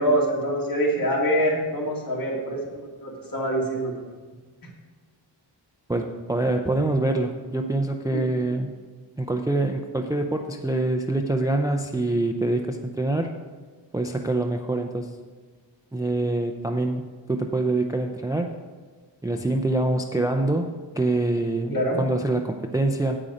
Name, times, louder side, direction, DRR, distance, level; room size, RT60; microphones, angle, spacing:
voice 1, 0.0-3.9 8.1-8.3 21.7-22.0, equal, 50° left, -3 dB, 2.5 m, -25 dB
voice 2, 5.9-8.7 9.2-13.3 13.9-15.1 15.9-18.5 19.2-23.2, right 2 dB, 10° right, 4 dB, 0.4 m, -25 dB
9.2 x 8.8 x 5.0 m, 1.4 s
wide cardioid pair, 170°, 44 cm